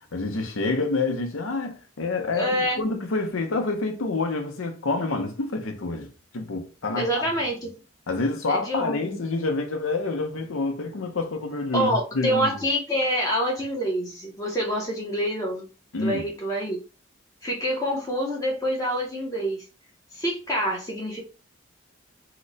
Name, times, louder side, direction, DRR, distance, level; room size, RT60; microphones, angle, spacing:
voice 1, 0.1-7.3 8.1-12.6 15.9-16.2, left 3 dB, 80° left, 0.7 m, -28 dB
voice 2, 2.3-2.8 7.0-7.7 8.5-9.2 11.7-15.7 16.0-16.8 17.4-19.6 20.1-21.2, equal, 15° left, 0.7 m, -26 dB
2.9 x 2.2 x 3.9 m
head